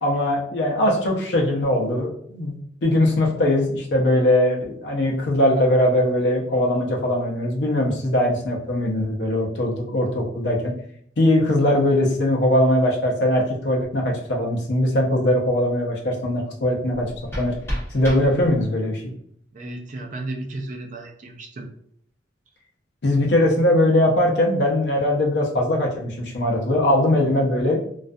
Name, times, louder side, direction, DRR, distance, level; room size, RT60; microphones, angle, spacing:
voice 1, 0.0-2.6 2.8-10.7 11.2-17.1 17.4-17.5 17.9-19.1 23.0-27.8, left 1 dB, 65° left, 0 dB, 0.5 m, -20 dB
sound 1, 16.9-18.9, equal, 15° left, 1.0 m, -32 dB
voice 2, 19.5-21.7, right 2 dB, 40° right, 3 dB, 0.4 m, -34 dB
2.3 x 2.2 x 2.5 m, 0.67 s
head